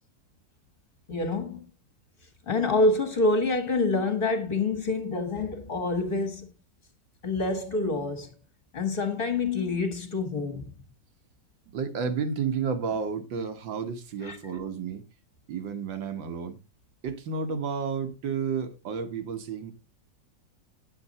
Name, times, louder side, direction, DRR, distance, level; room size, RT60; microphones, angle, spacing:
voice 1, 1.1-1.7 2.5-6.5 7.2-8.3 8.7-10.7 14.2-14.4, left 3 dB, 30° left, 1.7 m, -27 dB
voice 2, 11.7-15.0 15.5-16.6 17.0-19.7, right 6 dB, 80° right, 2.0 m, -31 dB
9.9 x 7.9 x 4.1 m
omnidirectional pair, 2.0 m